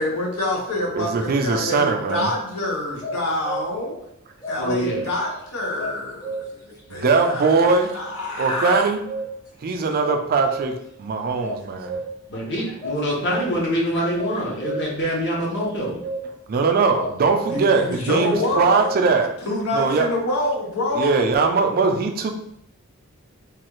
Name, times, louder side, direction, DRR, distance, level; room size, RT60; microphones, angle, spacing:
voice 1, 0.0-4.0 4.5-8.8 12.3-12.5 17.5-18.8 19.5-21.1, left 1 dB, 80° left, -1 dB, 0.9 m, -27 dB
voice 2, 0.9-2.3 6.9-7.9 8.4-9.0 9.6-12.0 16.5-19.3 19.7-20.1 21.0-22.3, right 4 dB, 45° right, 5 dB, 0.4 m, -20 dB
sound 1, 2.1-2.6 3.0-3.9 4.4-5.4 5.8-6.7 7.2-8.2 8.6-9.6 10.0-11.0 11.4-12.4 12.8-13.7 14.2-15.0 15.6-16.5 17.0-18.0 18.3-19.1, right 1 dB, 15° left, 0.6 m, -32 dB
voice 3, 4.6-5.1 12.3-16.0, equal, 55° left, -3 dB, 0.9 m, -25 dB
3.2 x 2.3 x 3.0 m, 0.71 s
head